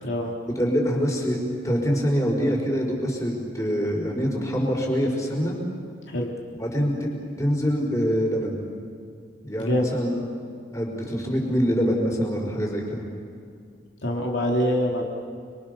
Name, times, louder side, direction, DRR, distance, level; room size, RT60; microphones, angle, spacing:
voice 1, 0.0-0.3 6.1-6.3 9.6-9.9 14.0-15.0, equal, 70° left, -1 dB, 2.9 m, -25 dB
voice 2, 0.5-1.4 1.6-5.5 6.5-7.1 7.4-8.5 9.4-10.2 10.7-13.0, equal, 15° left, -1 dB, 5.0 m, -24 dB
29.5 x 23.5 x 6.8 m, 2.2 s
head